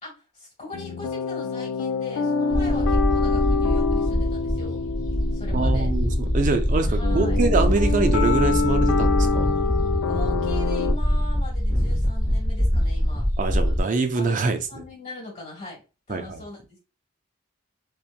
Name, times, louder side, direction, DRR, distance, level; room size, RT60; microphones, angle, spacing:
voice 1, 0.0-4.8 5.3-5.9 6.8-7.4 10.0-13.3 13.5-13.8 14.1-15.8 16.1-16.8, left 1 dB, 35° left, 1.5 m, -40 dB
sound 1, 0.7-10.9, left 4 dB, 90° left, 0.3 m, -26 dB
sound 2, 2.5-13.8, equal, 20° left, 0.8 m, -23 dB
voice 2, 5.5-9.6 13.4-14.6 16.1-16.4, right 4 dB, 40° right, 0.4 m, -25 dB
2.8 x 2.2 x 2.4 m
head